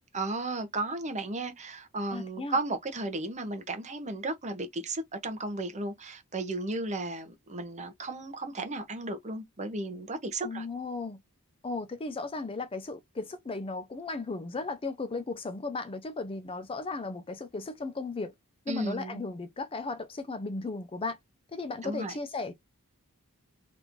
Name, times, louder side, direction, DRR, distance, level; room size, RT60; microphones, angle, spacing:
voice 1, 0.1-10.7 18.7-19.2 21.8-22.1, right 2 dB, 30° right, 0.7 m, -34 dB
voice 2, 2.1-2.6 10.4-11.2 11.6-18.3 18.7-21.2 21.5-22.6, left 3 dB, 25° left, 0.5 m, -36 dB
3.1 x 2.5 x 3.5 m
head